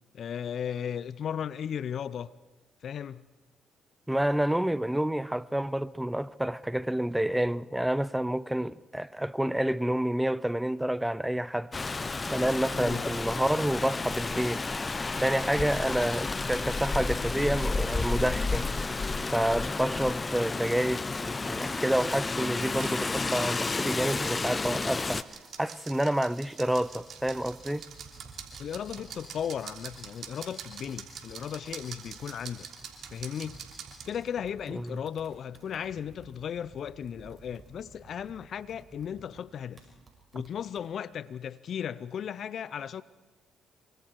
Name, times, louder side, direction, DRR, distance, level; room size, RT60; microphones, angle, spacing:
voice 1, 0.1-2.3 2.8-3.2 12.8-13.0 28.6-32.7 33.1-33.6 34.1-39.8 40.3-43.0, left 8 dB, 60° left, 0.7 m, -36 dB
voice 2, 4.1-11.7 12.3-14.6 15.2-18.7 19.3-25.3 25.6-27.9 34.7-35.0, right 1 dB, 5° right, 0.6 m, -29 dB
Rain, 11.7-25.2, left 3 dB, 30° left, 0.9 m, -31 dB
sound 1, 22.7-34.1, right 7 dB, 65° right, 3.3 m, -46 dB
Computer keyboard, 26.8-40.9, right 3 dB, 40° right, 6.3 m, -54 dB
26.0 x 24.5 x 4.7 m
hypercardioid pair, 55°, 0 cm